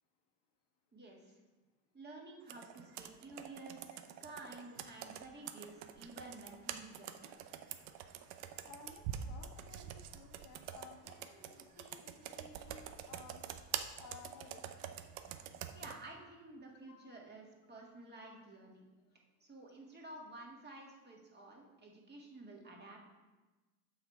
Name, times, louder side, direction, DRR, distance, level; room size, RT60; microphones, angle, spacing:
voice 1, 0.9-1.3 1.9-3.8 4.2-7.4 15.7-18.9 19.4-23.0, right 2 dB, 20° right, -1 dB, 1.8 m, -52 dB
Computer keyboard, 2.5-16.0, right 10 dB, 75° right, 0.7 m, -46 dB
voice 2, 8.6-13.4 14.0-14.7 16.8-17.2 19.7-19.8, left 5 dB, 75° left, 1 dB, 1.6 m, -57 dB
6.6 x 5.7 x 4.5 m, 1.2 s
hypercardioid pair, 90°, 47 cm